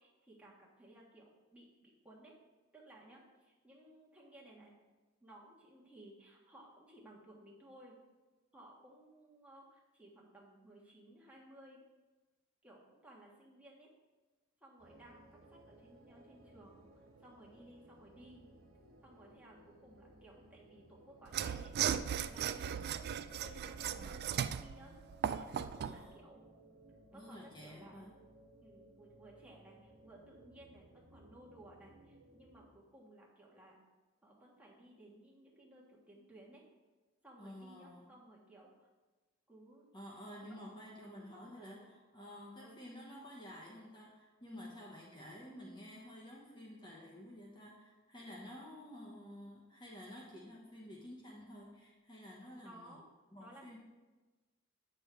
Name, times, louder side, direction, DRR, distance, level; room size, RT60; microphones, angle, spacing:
voice 1, 0.0-2.3 2.7-4.7 5.2-7.9 8.5-11.8 12.6-13.9 14.6-18.4 19.0-21.7 22.2-22.8 23.4-25.0 25.3-26.4 27.1-28.1 28.6-33.8 34.2-36.6 37.2-38.9 39.5-39.8 40.4-40.7 41.2-41.9 42.6-42.8 52.6-53.0 53.4-53.8, right 1 dB, 5° right, -4 dB, 1.5 m, -58 dB
sound 1, 14.8-32.7, right 1 dB, 85° right, 1.3 m, -61 dB
Mechanisms / Sawing, 21.3-26.0, right 9 dB, 50° right, 0.3 m, -37 dB
voice 2, 23.9-24.7 25.8-26.1 27.1-28.1 37.4-38.2 39.9-53.0 53.3-53.8, left 1 dB, 20° left, -3 dB, 1.1 m, -51 dB
9.2 x 6.6 x 3.4 m, 1.2 s
head